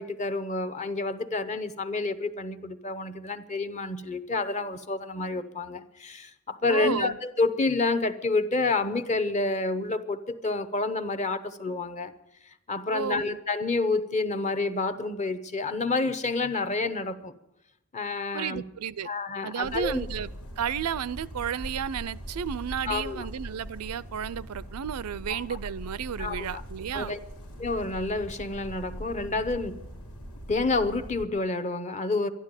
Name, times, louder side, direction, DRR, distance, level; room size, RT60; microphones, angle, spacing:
voice 1, 0.0-12.1 12.5-17.3 17.9-18.6 19.0-20.1 22.9-23.3 25.3-25.6 26.2-26.6 26.9-27.2 27.6-29.9 30.5-32.3, left 3 dB, 30° left, 0.8 m, -29 dB
voice 2, 6.7-7.2 12.9-13.4 18.3-19.1 19.4-20.3 20.6-27.2, right 8 dB, 90° right, 0.5 m, -32 dB
sound 1, 19.6-31.3, equal, 85° left, 2.3 m, -41 dB
12.0 x 12.0 x 8.9 m
head